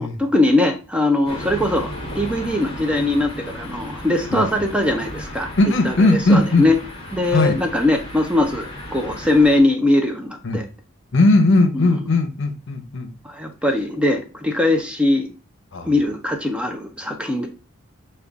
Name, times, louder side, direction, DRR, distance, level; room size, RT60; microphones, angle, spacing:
voice 1, 0.0-5.5 5.8-6.8 7.1-10.6 11.7-11.9 13.2-15.3 15.8-17.5, left 2 dB, 5° right, 0.4 m, -20 dB
sound 1, 1.2-9.6, left 1 dB, 25° left, 0.9 m, -34 dB
voice 2, 4.3-4.7 5.6-6.7 7.3-7.6 10.4-10.6 11.1-13.1 15.7-15.9, left 2 dB, 60° left, 0.7 m, -18 dB
5.3 x 2.3 x 3.4 m
head